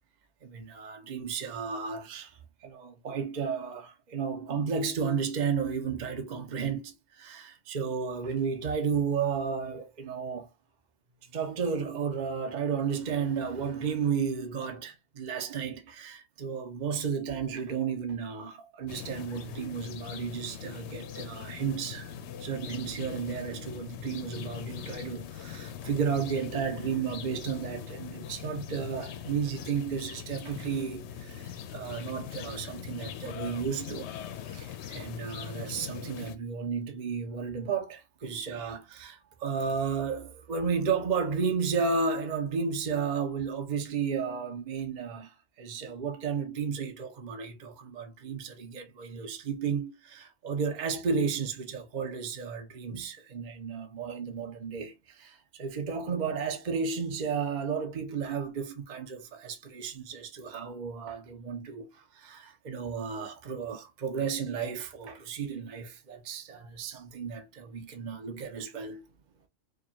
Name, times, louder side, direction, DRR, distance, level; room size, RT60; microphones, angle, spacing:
voice 1, 0.4-10.5 11.3-22.1 22.4-34.1 34.5-45.3 45.6-69.0, right 6 dB, 40° right, 0.8 m, -33 dB
sound 1, 18.9-36.4, left 8 dB, 65° left, 0.8 m, -41 dB
4.9 x 2.4 x 2.9 m
omnidirectional pair, 1.4 m